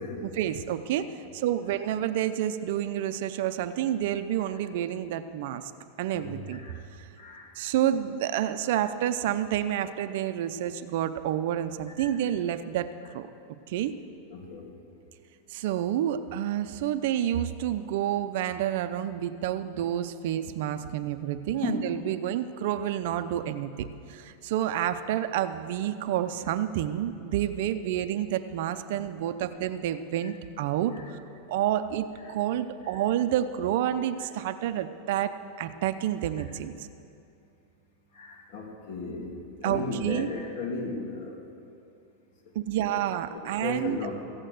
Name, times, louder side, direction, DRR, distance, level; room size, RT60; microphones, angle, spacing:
voice 1, 0.2-5.6 6.0-6.6 7.6-13.3 13.7-13.9 15.5-31.0 31.5-36.7 39.6-40.3 42.5-44.0, right 11 dB, 60° right, 11 dB, 0.6 m, -29 dB
voice 2, 6.1-6.8 7.2-7.5 12.0-12.1 14.3-14.7 21.6-21.9 30.2-30.3 30.9-31.0 32.2-32.3 32.8-33.0 38.1-39.4 39.6-41.4 42.8-43.0 43.3-44.1, left 3 dB, 55° left, -1 dB, 2.8 m, -36 dB
15.0 x 8.8 x 7.8 m, 2.6 s
supercardioid pair, 150°, 0 cm